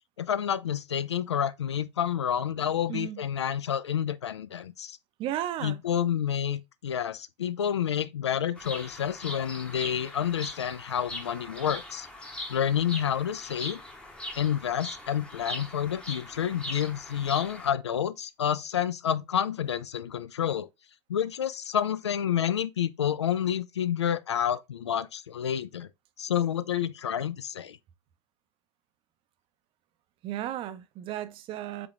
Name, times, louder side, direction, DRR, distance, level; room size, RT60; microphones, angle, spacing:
voice 1, 0.2-5.0 5.6-12.1 12.5-13.8 14.4-20.7 21.1-25.9 26.2-27.8, left 9 dB, 75° left, 0.4 m, -29 dB
voice 2, 2.9-3.2 5.2-5.8 30.2-31.9, right 12 dB, 40° right, 0.5 m, -34 dB
Bird vocalization bird call bird song, 8.6-17.7, left 1 dB, 5° left, 0.8 m, -41 dB
4.5 x 3.7 x 2.4 m
figure-of-eight pair, 75°, 14 cm